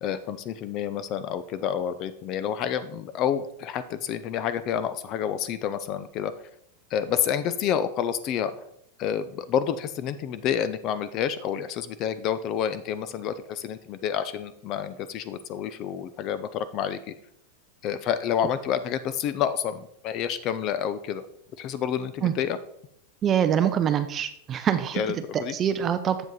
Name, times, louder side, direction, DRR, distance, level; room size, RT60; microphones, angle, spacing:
voice 1, 0.0-6.3 6.9-8.5 9.0-17.1 17.8-21.2 21.6-22.6 24.9-25.5, left 9 dB, 40° left, 13 dB, 0.4 m, -29 dB
voice 2, 23.2-25.0 25.3-26.2, right 9 dB, 25° right, 10 dB, 0.4 m, -24 dB
7.6 x 5.0 x 4.0 m, 0.72 s
supercardioid pair, 140°, 0 cm